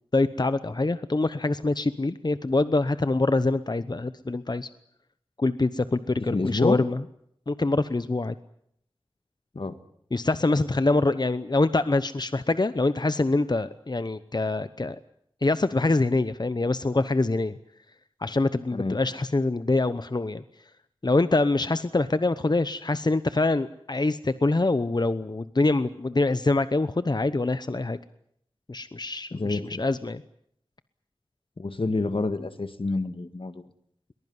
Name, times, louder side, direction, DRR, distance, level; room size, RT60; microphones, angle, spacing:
voice 1, 0.1-4.7 5.4-7.0 7.5-8.3 10.1-15.0 15.4-17.6 18.2-20.4 21.0-28.0 28.7-30.2, left 2 dB, 50° left, 13 dB, 0.9 m, -25 dB
voice 2, 6.2-6.8 9.5-9.8 18.7-19.0 29.3-29.8 31.6-33.6, left 3 dB, 80° left, 10 dB, 1.8 m, -28 dB
22.0 x 21.0 x 9.6 m, 0.70 s
wide cardioid pair, 55°, 9 cm